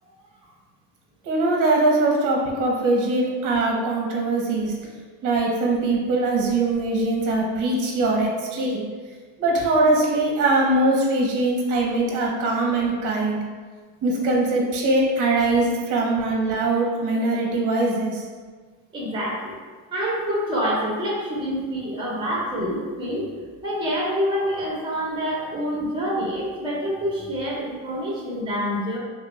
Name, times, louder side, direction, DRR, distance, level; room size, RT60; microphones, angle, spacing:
voice 1, 1.2-4.8 5.2-8.8 9.4-13.4 14.0-18.3, right 2 dB, 45° right, -1 dB, 0.8 m, -22 dB
voice 2, 18.9-19.6 19.9-23.3 23.6-29.0, equal, 10° right, -6 dB, 1.0 m, -26 dB
3.1 x 2.4 x 3.1 m, 1.5 s
cardioid pair, 105°, 42 cm